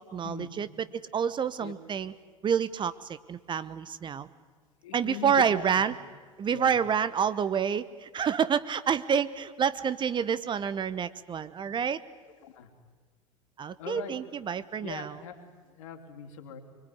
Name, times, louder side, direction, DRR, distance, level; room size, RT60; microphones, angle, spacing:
voice 1, 0.0-2.1 2.4-4.3 4.9-6.0 6.4-12.0 13.6-15.2, right 7 dB, 25° right, 15 dB, 1.0 m, -28 dB
voice 2, 4.8-5.7 6.5-6.7 12.4-12.7 13.8-14.1 14.8-15.4 15.8-16.6, left 7 dB, 65° left, 5 dB, 3.3 m, -40 dB
24.5 x 23.0 x 9.5 m, 1.5 s
figure-of-eight pair, 75°, 18 cm